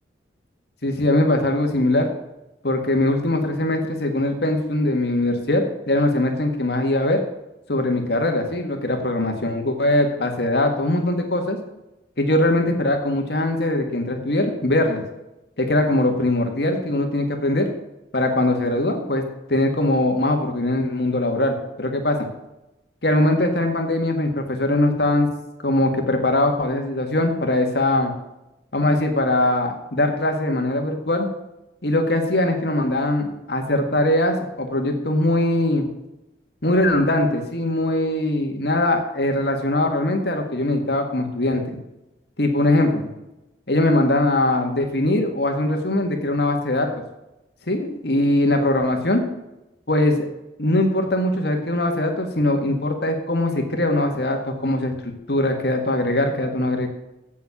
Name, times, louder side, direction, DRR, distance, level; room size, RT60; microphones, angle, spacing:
voice 1, 0.8-2.1 2.6-7.2 7.7-11.6 12.2-15.0 15.6-17.7 18.1-19.2 19.5-22.3 23.0-25.3 25.6-28.1 28.7-31.3 31.8-35.9 36.6-41.8 42.4-43.1 43.7-46.9 47.7-49.2 49.9-50.3 50.6-56.9, left 1 dB, 60° left, 4 dB, 1.8 m, -21 dB
8.5 x 7.5 x 7.1 m, 0.93 s
head